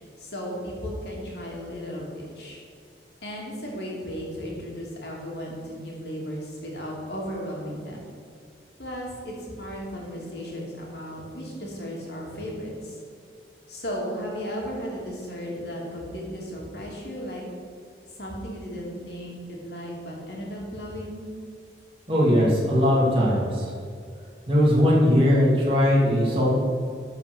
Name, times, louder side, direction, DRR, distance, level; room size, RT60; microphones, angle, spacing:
voice 1, 0.0-2.6 3.2-8.0 8.8-13.0 13.7-17.4 18.2-21.2, equal, 70° left, -2 dB, 2.7 m, -35 dB
voice 2, 22.1-23.8 24.5-26.5, equal, 30° right, -5 dB, 2.6 m, -20 dB
12.0 x 5.1 x 6.1 m, 2.3 s
head